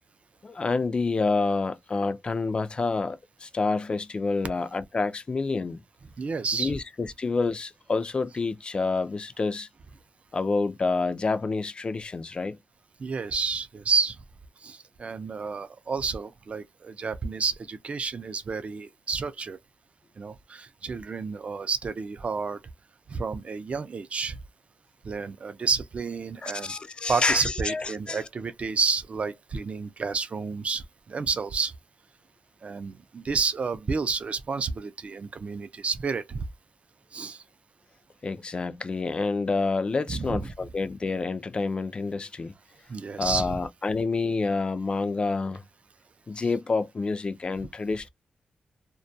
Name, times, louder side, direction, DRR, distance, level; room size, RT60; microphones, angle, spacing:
voice 1, 0.4-5.8 6.6-9.7 10.3-12.6 26.4-28.2 38.2-42.5 43.2-45.6 46.3-48.1, left 3 dB, 35° left, 0.3 m, -28 dB
voice 2, 6.2-6.8 13.0-14.2 14.6-19.6 20.2-22.6 23.1-24.4 25.0-26.7 27.1-31.7 32.6-36.5 37.1-37.4 40.1-40.5 42.9-43.6, right 5 dB, 45° right, 0.4 m, -30 dB
2.2 x 2.1 x 2.6 m
cardioid pair, 100°, 3 cm